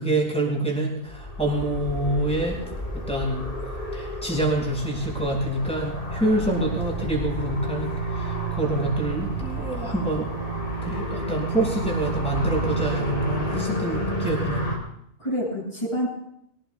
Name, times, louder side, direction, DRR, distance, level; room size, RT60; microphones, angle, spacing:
voice 1, 0.0-2.6 2.9-3.5 3.9-10.3 10.8-14.7, right 2 dB, 5° left, -2 dB, 5.6 m, -26 dB
sound 1, 1.1-14.8, right 1 dB, 55° left, 3.9 m, -30 dB
voice 2, 13.5-14.3 15.2-16.1, left 1 dB, 25° left, -10 dB, 6.7 m, -29 dB
23.5 x 18.5 x 2.3 m, 0.72 s
omnidirectional pair, 1.1 m